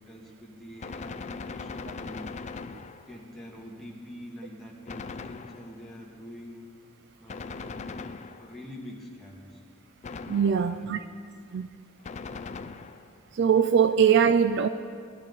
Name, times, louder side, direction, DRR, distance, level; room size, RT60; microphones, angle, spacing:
voice 1, 0.0-2.3 3.1-6.7 7.2-9.6 10.5-11.0, equal, ahead, -4 dB, 1.9 m, -45 dB
Gunshot gunfire, 0.8-3.3 4.9-5.9 7.3-8.7 10.0-10.8 12.0-13.2, left 4 dB, 30° left, 0.4 m, -40 dB
voice 2, 10.3-11.0 11.5-11.7 13.3-14.7, right 7 dB, 50° right, 11 dB, 0.3 m, -21 dB
20.0 x 12.0 x 4.0 m, 2.2 s
head